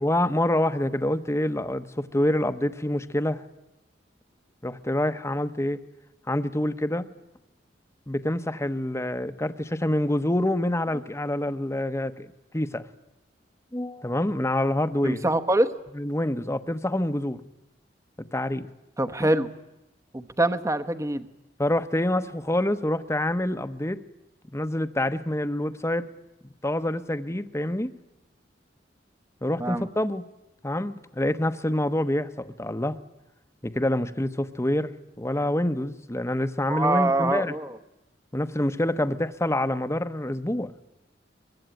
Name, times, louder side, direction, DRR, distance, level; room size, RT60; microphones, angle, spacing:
voice 1, 0.0-3.4 4.6-5.8 6.3-7.1 8.1-12.3 12.5-12.9 13.7-15.3 15.9-17.4 18.3-18.7 21.6-24.0 24.5-26.1 26.6-27.9 29.4-30.2 30.6-33.0 33.6-37.5 38.3-40.8, left 1 dB, 15° left, 11 dB, 1.0 m, -26 dB
voice 2, 15.0-15.7 19.0-19.5 20.1-21.3 29.6-29.9 36.7-37.7, right 1 dB, 15° right, 10 dB, 1.0 m, -24 dB
24.0 x 22.0 x 9.1 m, 0.94 s
head